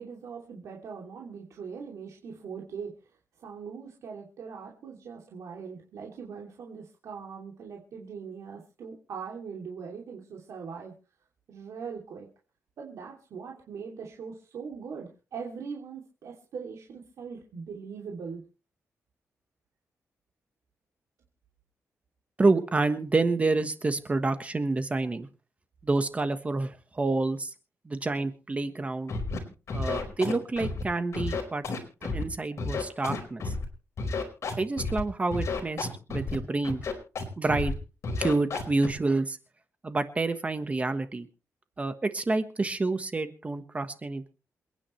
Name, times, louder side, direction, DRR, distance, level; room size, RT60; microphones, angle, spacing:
voice 1, 0.0-3.1 3.4-10.9 11.5-12.3 12.8-18.4, right 6 dB, 85° right, -1 dB, 2.9 m, -41 dB
voice 2, 22.4-25.3 25.8-27.5 27.8-29.1 29.7-31.6 32.1-33.5 34.6-36.9 37.4-37.7 38.2-39.4 39.8-41.3 41.8-44.3, right 3 dB, 25° right, 9 dB, 1.3 m, -28 dB
Scratching (performance technique), 29.1-29.4 29.7-30.8 31.1-32.2 32.6-33.7 34.0-35.0 35.3-36.4 36.6-37.2 37.5-37.7 38.0-38.9, left 4 dB, 60° left, 4.8 m, -31 dB
28.0 x 9.9 x 3.2 m, 0.33 s
wide cardioid pair, 125°, 5 cm